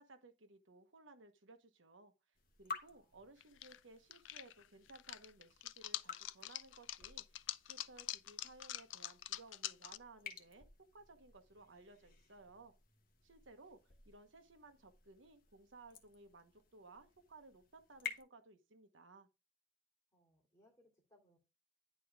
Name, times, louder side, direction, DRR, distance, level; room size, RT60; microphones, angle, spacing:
voice 1, 0.0-2.1 2.6-10.7 10.9-12.7 13.2-19.3, right 3 dB, 90° right, 1.2 m, -60 dB
sound 1, 2.3-18.2, left 5 dB, 45° left, 1.2 m, -54 dB
sound 2, 3.4-3.8 4.1-10.0, left 14 dB, 85° left, 0.4 m, -45 dB
voice 2, 20.1-21.4, left 1 dB, 15° left, 2.8 m, -70 dB
10.0 x 4.6 x 3.5 m
head